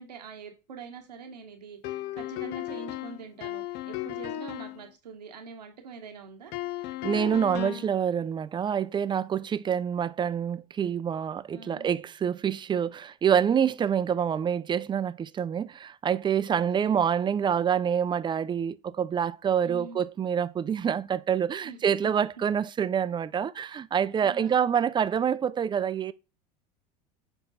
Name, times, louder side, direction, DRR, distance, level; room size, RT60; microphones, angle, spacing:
voice 1, 0.0-6.6 11.5-11.9 16.5-17.0 19.6-20.0 21.6-21.8 24.2-24.5, right 5 dB, 90° right, 1.2 m, -44 dB
sound 1, 1.8-4.8 6.5-8.0, left 14 dB, 55° left, 0.6 m, -35 dB
voice 2, 7.0-26.1, right 8 dB, 20° right, 0.5 m, -27 dB
6.7 x 4.4 x 4.0 m
hypercardioid pair, 85°, 21 cm